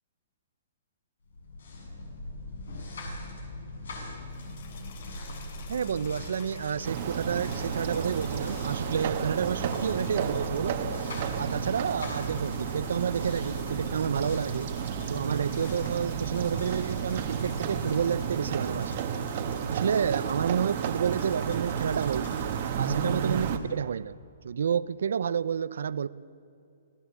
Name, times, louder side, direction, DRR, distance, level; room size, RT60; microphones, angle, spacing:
sound 1, 1.3-19.1, left 1 dB, 75° left, 7.4 m, -41 dB
sound 2, 4.2-23.5, left 5 dB, 50° left, 3.8 m, -49 dB
voice 1, 5.7-10.8 11.4-14.7 15.1-18.9 19.7-22.3 22.7-24.2 24.4-26.1, right 7 dB, 70° right, 0.8 m, -30 dB
sound 3, 6.8-23.6, right 7 dB, 35° right, 1.5 m, -32 dB
26.5 x 17.0 x 8.6 m
hypercardioid pair, 175°, 0 cm